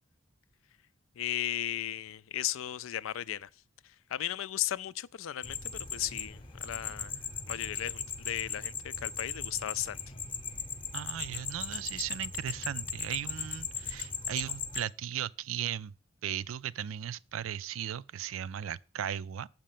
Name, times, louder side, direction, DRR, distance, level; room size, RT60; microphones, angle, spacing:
voice 1, 1.2-3.5 3.8-7.1 7.5-10.0, left 12 dB, 85° left, 0.4 m, -36 dB
sound 1, 5.4-14.8, left 6 dB, 25° left, 0.8 m, -38 dB
voice 2, 10.9-15.9 16.2-19.5, right 10 dB, 85° right, 0.4 m, -37 dB
7.6 x 5.1 x 7.3 m
head